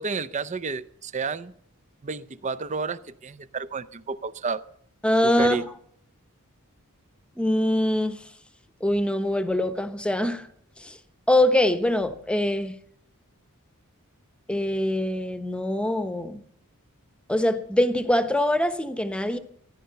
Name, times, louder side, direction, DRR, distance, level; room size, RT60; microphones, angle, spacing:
voice 1, 0.0-1.5 2.0-4.6 5.2-5.6, right 4 dB, 35° right, 16 dB, 0.6 m, -31 dB
voice 2, 5.0-5.6 7.4-8.2 8.8-10.5 10.8-11.0 11.3-12.7 14.5-16.4 17.3-19.4, left 1 dB, 5° left, 10 dB, 1.0 m, -23 dB
15.5 x 10.5 x 6.8 m, 0.66 s
head